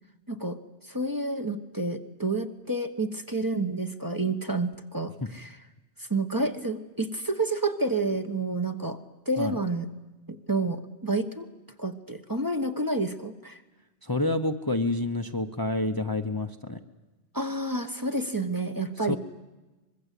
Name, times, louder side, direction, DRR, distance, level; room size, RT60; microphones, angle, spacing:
voice 1, 0.3-0.6 0.9-5.6 6.0-9.0 9.3-9.9 10.3-11.5 11.8-13.6 17.3-19.2, right 2 dB, 20° right, 6 dB, 1.2 m, -29 dB
voice 2, 14.0-16.8 19.1-19.2, left 2 dB, 20° left, 7 dB, 0.9 m, -28 dB
24.5 x 22.0 x 8.4 m, 1.1 s
omnidirectional pair, 1.1 m